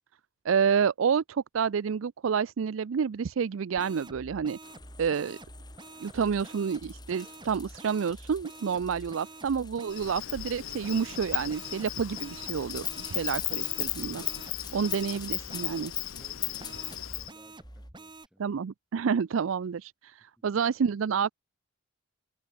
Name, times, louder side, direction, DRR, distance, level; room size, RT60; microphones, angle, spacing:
voice 1, 0.4-4.6 5.0-5.4 6.0-14.2 14.7-15.9 18.4-21.3, right 6 dB, 70° right, 0.4 m, -29 dB
sound 1, 3.7-10.1 10.8-15.9 16.6-18.3, right 2 dB, 25° right, 1.7 m, -48 dB
sound 2, 4.6-17.9, left 6 dB, 20° left, 1.0 m, -49 dB
Insect, 9.9-17.3, left 15 dB, 85° left, 0.9 m, -35 dB
voice 2, 16.2-18.5, equal, 5° right, 7.9 m, -59 dB
head